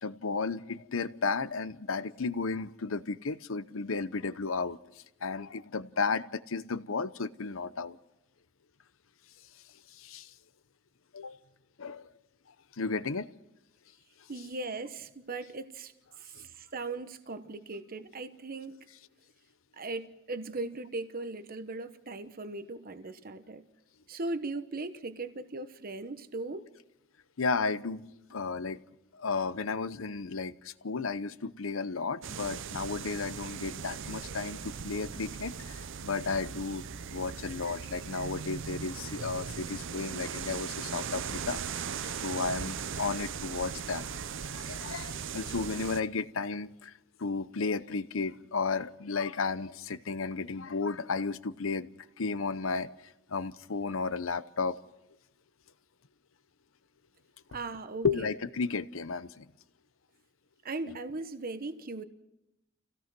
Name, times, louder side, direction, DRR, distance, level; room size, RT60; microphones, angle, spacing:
voice 1, 0.0-8.0 9.9-10.3 11.1-11.4 11.8-12.1 12.8-13.3 16.3-16.5 27.4-28.0 28.3-28.8 29.1-36.8 37.1-44.2 44.5-46.9 47.2-51.9 52.2-54.8 58.0-59.5 60.9-61.0, left 4 dB, 75° left, 0.8 m, -33 dB
voice 2, 14.3-15.9 16.2-18.9 19.7-23.6 24.1-26.7 57.5-58.3 60.6-62.0, right 3 dB, 45° right, 1.0 m, -38 dB
sound 1, 32.2-46.0, right 6 dB, 65° right, 0.7 m, -39 dB
27.0 x 17.0 x 6.0 m
head